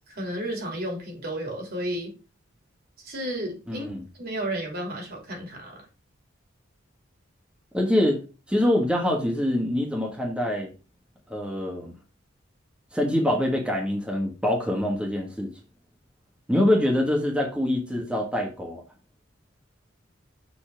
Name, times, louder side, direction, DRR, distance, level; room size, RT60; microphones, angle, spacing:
voice 1, 0.1-2.1 3.0-3.9 4.2-5.8, right 1 dB, 55° right, 3.3 m, -32 dB
voice 2, 3.7-4.0 7.7-8.2 8.5-10.7 11.3-11.9 12.9-15.5 16.5-18.8, left 1 dB, 5° right, 1.4 m, -24 dB
6.9 x 4.2 x 5.8 m
head